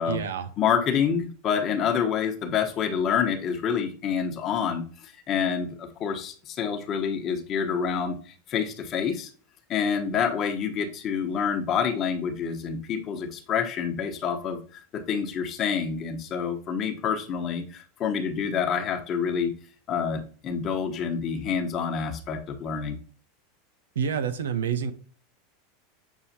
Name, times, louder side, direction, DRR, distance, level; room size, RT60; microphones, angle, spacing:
voice 1, 0.1-0.5 24.0-24.9, right 7 dB, 85° right, 11 dB, 0.7 m, -28 dB
voice 2, 0.6-9.3 9.7-19.5 19.9-23.0, left 7 dB, 40° left, 5 dB, 1.2 m, -27 dB
7.3 x 4.7 x 2.8 m, 0.42 s
hypercardioid pair, 105°, 0 cm